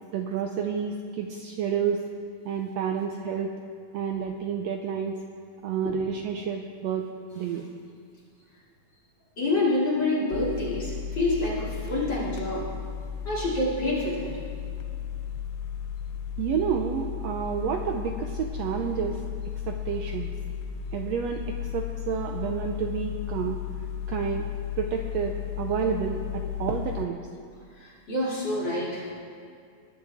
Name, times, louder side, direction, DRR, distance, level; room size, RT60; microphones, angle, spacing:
voice 1, 0.1-2.1 2.4-3.6 3.9-5.2 5.6-7.1 7.3-7.7 16.4-19.2 19.7-20.3 20.9-23.6 24.1-24.5 24.8-27.2, right 7 dB, 75° right, 3 dB, 1.6 m, -29 dB
voice 2, 9.4-12.7 13.2-14.4 27.8-29.1, left 2 dB, 35° left, -6 dB, 3.1 m, -27 dB
sound 1, 10.3-27.1, left 9 dB, 90° left, 1.3 m, -35 dB
20.5 x 11.0 x 3.5 m, 2.3 s
omnidirectional pair, 3.6 m